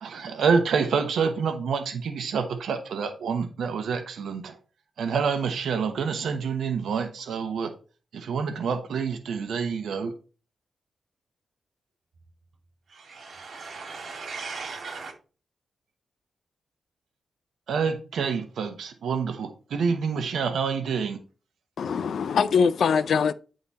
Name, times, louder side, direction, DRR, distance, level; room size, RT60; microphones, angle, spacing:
voice 1, 0.0-4.6 5.0-7.7 8.1-10.1 17.7-21.2, right 5 dB, 90° right, 0.8 m, -27 dB
voice 2, 12.9-15.1, right 4 dB, 65° right, 2.3 m, -38 dB
voice 3, 21.8-23.3, left 6 dB, 75° left, 0.4 m, -22 dB
9.8 x 3.8 x 4.1 m
wide cardioid pair, 105°, 0 cm